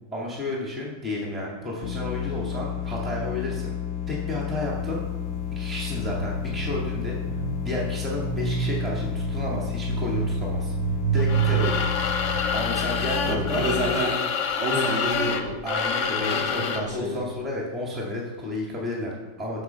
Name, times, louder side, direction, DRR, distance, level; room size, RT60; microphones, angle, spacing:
voice 1, 0.1-3.7 4.1-5.0 5.5-7.2 7.6-10.7 11.1-11.8 12.5-13.6 15.6-19.6, left 1 dB, ahead, -3 dB, 1.8 m, -31 dB
sound 1, 1.8-13.9, left 9 dB, 85° left, 0.6 m, -31 dB
sound 2, 4.6-12.4, right 7 dB, 75° right, 0.6 m, -29 dB
sound 3, 11.2-16.9, left 6 dB, 55° left, 0.9 m, -27 dB
voice 2, 13.2-14.2 14.6-15.6 16.1-17.2, right 1 dB, 45° right, -3 dB, 2.6 m, -28 dB
7.9 x 5.6 x 6.8 m, 1.1 s
omnidirectional pair, 1.9 m